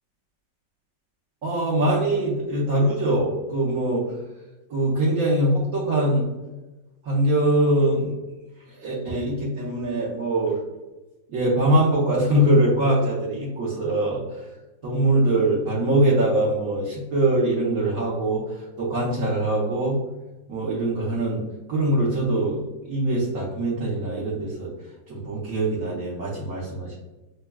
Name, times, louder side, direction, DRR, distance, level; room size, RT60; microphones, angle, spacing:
voice 1, 1.4-4.0 4.7-6.2 7.0-8.1 8.8-10.6 11.3-14.2 14.8-18.4 18.8-20.0 20.5-21.4 21.7-24.7 25.1-27.0, right 1 dB, 55° right, -7 dB, 1.2 m, -22 dB
6.2 x 2.2 x 2.2 m, 1.1 s
omnidirectional pair, 1.9 m